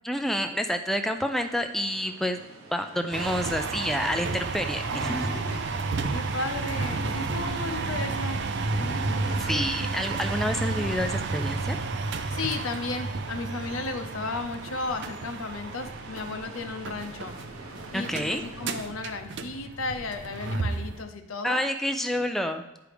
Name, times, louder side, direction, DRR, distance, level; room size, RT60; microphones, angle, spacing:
voice 1, 0.0-2.4 2.7-5.4 9.4-11.8 17.9-18.4 21.4-22.6, equal, ahead, 6 dB, 0.3 m, -28 dB
sound 1, 1.4-18.8, right 2 dB, 90° right, 1.0 m, -47 dB
sound 2, 3.1-21.0, right 3 dB, 55° right, 0.5 m, -32 dB
Animal, 4.9-6.1 6.8-7.9 8.7-9.7, left 1 dB, 35° left, 0.8 m, -37 dB
voice 2, 6.1-8.4 12.3-17.3 17.9-21.6, left 3 dB, 85° left, 7 dB, 0.8 m, -34 dB
10.0 x 4.8 x 3.4 m, 1.0 s
head